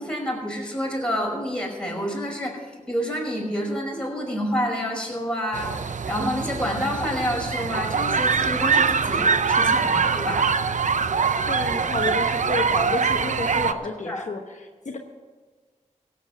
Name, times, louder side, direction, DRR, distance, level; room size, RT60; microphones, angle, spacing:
voice 1, 0.0-10.5 14.1-14.3, equal, 5° left, -1 dB, 5.4 m, -28 dB
sound 1, 5.5-13.7, right 5 dB, 70° right, 0.6 m, -23 dB
voice 2, 11.4-15.0, left 3 dB, 65° left, 3 dB, 1.2 m, -31 dB
16.5 x 8.2 x 6.6 m, 1.3 s
cardioid pair, 40°, 13 cm